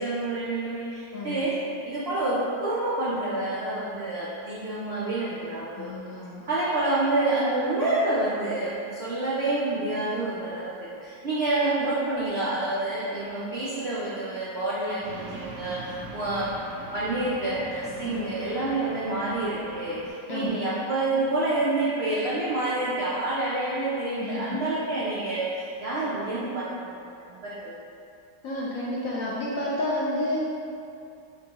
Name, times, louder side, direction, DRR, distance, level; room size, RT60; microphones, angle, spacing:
voice 1, 0.0-1.5 1.8-5.9 6.4-16.5 16.9-27.8, right 2 dB, 85° right, -8 dB, 0.5 m, -28 dB
voice 2, 1.1-1.5 5.8-6.4 18.1-18.4 20.3-20.7 24.2-24.6 28.4-30.4, left 1 dB, 70° left, -6 dB, 0.8 m, -31 dB
sound 1, 15.0-20.1, right 1 dB, 65° right, 0.9 m, -42 dB
6.2 x 2.2 x 2.9 m, 2.6 s
omnidirectional pair, 1.9 m